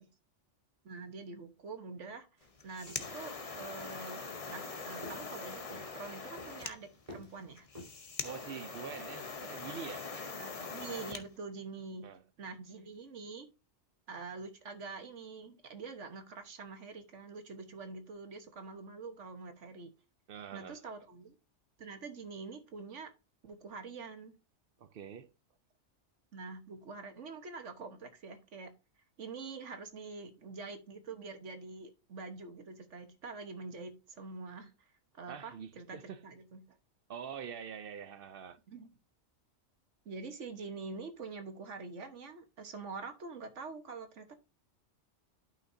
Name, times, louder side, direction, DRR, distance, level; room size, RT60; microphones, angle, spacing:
voice 1, 0.8-2.3 2.6-7.7 10.3-12.1 12.4-13.5 14.1-19.9 20.5-21.3 21.8-23.1 23.4-24.3 26.3-28.7 29.2-34.7 35.1-36.6 38.7-38.9 40.0-44.3, right 4 dB, 80° right, 1.5 m, -45 dB
sound 1, 2.4-8.0, left 1 dB, 30° right, 4.1 m, -53 dB
sound 2, 2.5-11.3, left 4 dB, 35° left, 0.8 m, -43 dB
voice 2, 8.2-10.1 12.0-12.2 20.3-20.8 24.8-25.3 35.3-36.2 37.1-38.6, right 7 dB, 60° right, 0.7 m, -45 dB
11.5 x 5.9 x 2.7 m
omnidirectional pair, 1.2 m